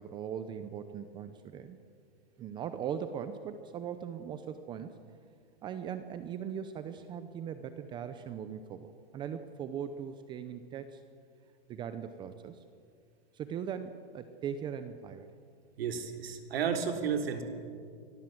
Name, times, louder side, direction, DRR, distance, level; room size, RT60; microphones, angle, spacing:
voice 1, 0.0-1.8 2.4-5.0 5.6-11.0 11.7-12.6 13.3-15.3, right 8 dB, 15° right, 10 dB, 0.6 m, -40 dB
voice 2, 15.8-17.4, right 7 dB, 80° right, 5 dB, 3.5 m, -32 dB
24.5 x 19.0 x 7.8 m, 2.2 s
supercardioid pair, 160°, 30 cm